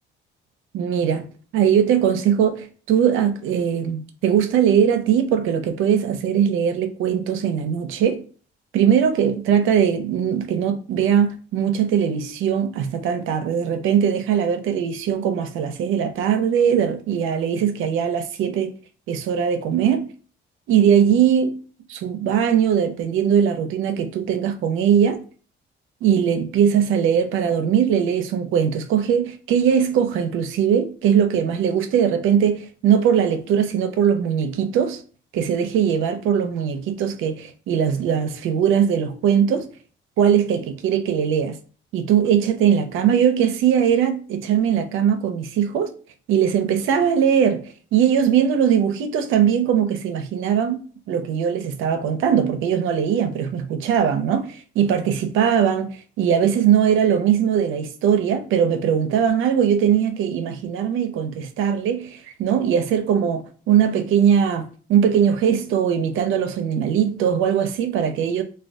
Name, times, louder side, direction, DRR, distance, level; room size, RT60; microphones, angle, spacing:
voice 1, 0.7-1.2 1.5-8.2 8.7-18.7 19.1-20.1 20.7-21.6 21.9-25.2 26.0-35.0 35.3-39.7 40.2-41.6 41.9-45.9 46.3-68.4, right 8 dB, 85° right, 0.5 m, -20 dB
2.5 x 2.3 x 3.4 m
cardioid pair, 90°, 20 cm